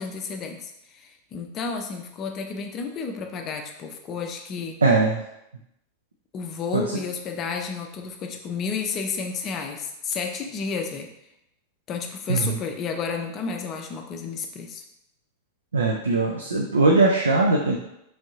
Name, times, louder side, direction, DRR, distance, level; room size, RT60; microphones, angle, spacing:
voice 1, 0.0-4.8 6.3-11.1 11.9-14.8, left 5 dB, 30° left, 5 dB, 0.4 m, -31 dB
voice 2, 4.8-5.2 6.7-6.8 12.3-12.6 15.7-17.8, right 3 dB, 75° right, 0 dB, 0.3 m, -20 dB
3.1 x 2.6 x 2.8 m, 0.83 s
figure-of-eight pair, 90°, 0 cm